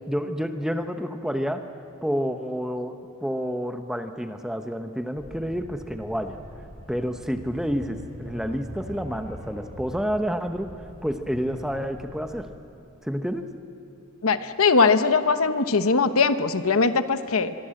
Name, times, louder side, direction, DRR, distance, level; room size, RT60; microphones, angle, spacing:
voice 1, 0.1-1.7 2.0-6.4 6.9-12.5 13.0-13.6, equal, 5° right, 6 dB, 0.9 m, -29 dB
sound 1, 5.2-12.3, right 1 dB, 30° right, 5.7 m, -42 dB
voice 2, 14.2-17.5, left 4 dB, 75° left, 10 dB, 1.0 m, -21 dB
24.5 x 23.0 x 7.7 m, 2.9 s
head